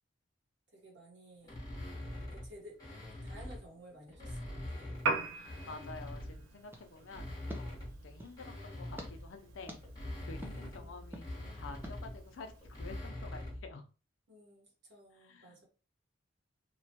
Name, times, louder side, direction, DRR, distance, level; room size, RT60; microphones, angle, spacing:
voice 1, 0.7-1.6 2.3-4.9 10.4-11.0 14.3-15.7, equal, 60° right, -1 dB, 1.1 m, -55 dB
sound 1, 1.4-3.7 4.1-6.5 6.9-13.7, left 1 dB, 20° left, 1.0 m, -44 dB
Piano, 4.9-13.0, right 3 dB, 85° right, 0.5 m, -43 dB
voice 2, 5.3-9.8 10.2-12.5 12.8-13.8 15.2-15.6, left 3 dB, 75° left, 5 dB, 0.5 m, -50 dB
sound 2, 6.7-8.4 9.0-9.1 9.7-9.8 10.4-10.6 11.1-11.3 11.8-12.0, equal, 10° right, 0.4 m, -48 dB
2.9 x 2.2 x 2.7 m, 0.34 s
head